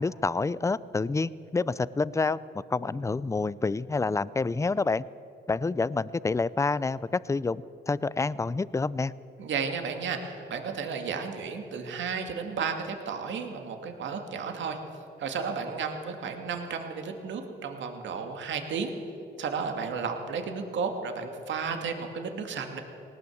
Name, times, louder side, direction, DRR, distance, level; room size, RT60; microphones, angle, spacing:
voice 1, 0.0-5.0 5.5-9.1, left 3 dB, 15° left, 19 dB, 0.5 m, -28 dB
voice 2, 9.4-14.8 15.2-18.9 19.4-22.8, right 5 dB, 70° right, 5 dB, 2.4 m, -33 dB
19.5 x 18.5 x 7.9 m, 2.9 s
cardioid pair, 90°, 20 cm